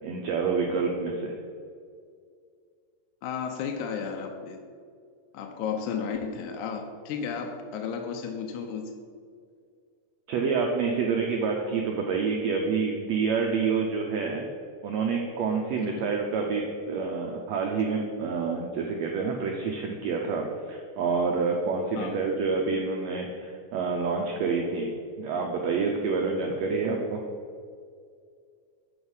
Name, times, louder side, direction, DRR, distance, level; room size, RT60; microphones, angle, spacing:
voice 1, 0.0-1.3 10.3-14.5 14.8-24.9 25.2-27.2, right 5 dB, 85° right, 1 dB, 1.5 m, -28 dB
voice 2, 3.2-4.6 5.3-8.9 15.8-16.1 22.0-22.2, left 6 dB, 80° left, 4 dB, 2.0 m, -33 dB
8.0 x 4.8 x 5.4 m, 2.2 s
omnidirectional pair, 3.8 m